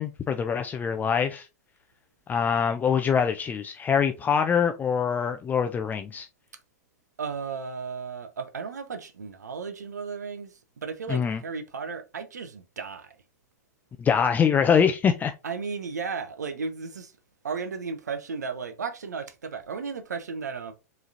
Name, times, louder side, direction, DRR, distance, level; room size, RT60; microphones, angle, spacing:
voice 1, 0.0-1.5 2.3-6.3 11.1-11.4 14.0-15.3, left 7 dB, 20° left, 0.4 m, -24 dB
voice 2, 7.2-13.2 15.4-17.1 17.4-20.7, right 5 dB, 90° right, 0.5 m, -34 dB
4.7 x 3.1 x 2.6 m
hypercardioid pair, 105°, 9 cm